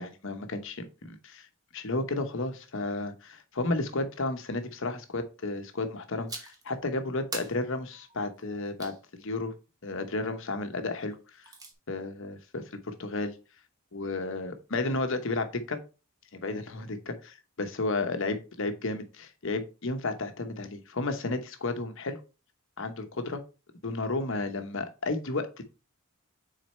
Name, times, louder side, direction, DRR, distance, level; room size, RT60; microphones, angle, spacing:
voice 1, 0.0-1.5 1.7-8.9 9.2-9.5 9.8-11.5 11.9-13.3 13.9-15.8 16.3-22.2 22.8-23.4 23.8-25.6, left 2 dB, 60° left, 8 dB, 1.0 m, -32 dB
sound 1, 6.3-6.7 7.3-9.0 11.1-11.7, right 3 dB, 15° right, 1.1 m, -42 dB
6.3 x 4.2 x 4.3 m, 0.32 s
head